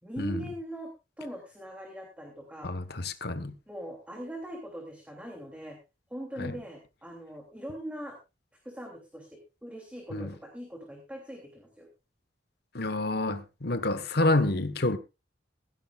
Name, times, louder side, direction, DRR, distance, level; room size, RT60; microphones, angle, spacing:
voice 1, 0.0-0.9 1.2-2.7 3.7-5.8 6.1-8.2 8.6-11.9, equal, 5° right, 2.8 m, -41 dB
voice 2, 2.6-3.5 6.4-6.6 10.1-10.3 12.7-15.0, left 2 dB, 60° left, 1.3 m, -28 dB
17.0 x 15.0 x 2.4 m
head